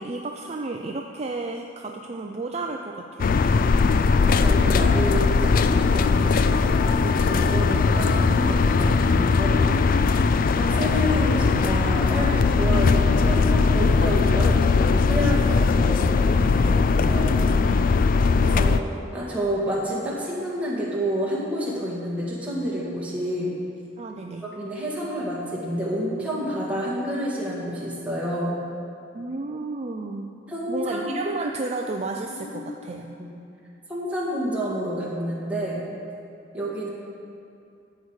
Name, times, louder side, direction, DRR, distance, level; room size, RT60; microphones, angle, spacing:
voice 1, 0.0-3.4 9.3-9.4 15.5-15.9 17.6-18.1 24.0-24.4 29.1-30.4 30.7-33.1, right 3 dB, 30° right, 2 dB, 0.4 m, -33 dB
sound 1, 3.2-18.8, left 4 dB, 45° left, 0.3 m, -20 dB
voice 2, 4.3-9.7 10.4-17.5 18.4-18.8 19.1-23.6 24.5-28.6 30.5-31.1 32.3-32.7 33.2-33.3 33.9-35.8 36.5-36.9, equal, 5° right, -6 dB, 1.9 m, -29 dB
12.5 x 4.8 x 8.1 m, 2.6 s
head